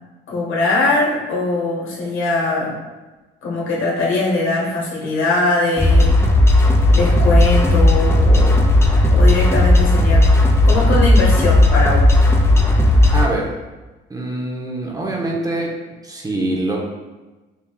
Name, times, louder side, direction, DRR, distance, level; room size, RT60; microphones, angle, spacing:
voice 1, 0.3-2.8 3.4-6.1 6.9-8.7 9.1-10.3 10.6-12.1, left 2 dB, 80° left, -4 dB, 1.2 m, -21 dB
sound 1, 5.8-13.3, left 1 dB, 15° left, 0.4 m, -13 dB
voice 2, 13.1-13.5 14.1-15.7 16.0-16.8, right 2 dB, 20° right, -1 dB, 0.7 m, -24 dB
5.7 x 2.6 x 2.3 m, 1.2 s
cardioid pair, 90°, 20 cm